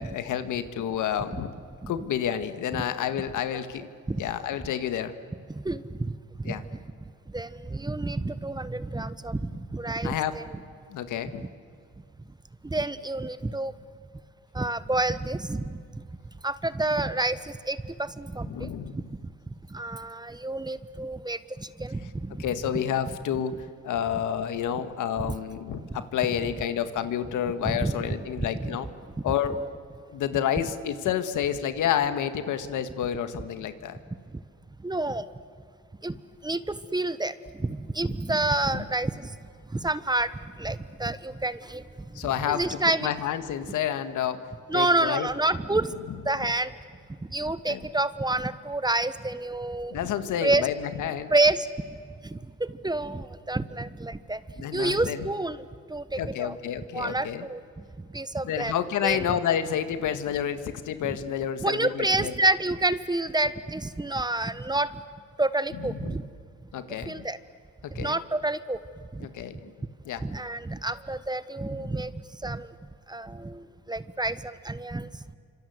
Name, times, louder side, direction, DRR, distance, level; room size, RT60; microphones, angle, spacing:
voice 1, 0.0-1.5 1.9-3.9 4.2-5.1 6.5-6.6 10.0-10.3 10.9-11.4 18.5-19.0 22.4-28.9 29.2-29.6 30.1-34.0 38.7-38.8 42.2-44.5 44.7-45.3 47.7-47.8 49.9-51.3 54.6-55.2 56.2-57.5 58.4-62.3 66.0-66.2 66.7-67.3 67.8-68.2 69.2-69.7 70.1-70.2 71.8-71.9, left 9 dB, 80° left, 10 dB, 1.8 m, -29 dB
voice 2, 5.5-6.6 7.3-10.4 12.6-13.7 14.5-16.0 16.4-19.2 19.7-22.4 22.7-22.8 25.2-25.3 27.6-28.0 28.4-28.7 29.3-29.4 34.8-35.2 36.0-36.2 36.4-39.3 39.7-40.3 40.6-41.8 42.5-43.1 44.7-45.9 46.2-46.7 47.3-50.0 50.4-50.7 51.3-51.7 52.2-54.4 54.7-56.6 56.9-58.7 59.0-59.2 61.0-61.2 61.6-65.0 65.4-66.3 67.0-67.4 67.9-68.8 69.1-69.3 70.2-72.7 73.1-75.3, right 2 dB, 15° right, 14 dB, 1.1 m, -29 dB
28.0 x 26.0 x 8.1 m, 2.2 s
cardioid pair, 90°, 30 cm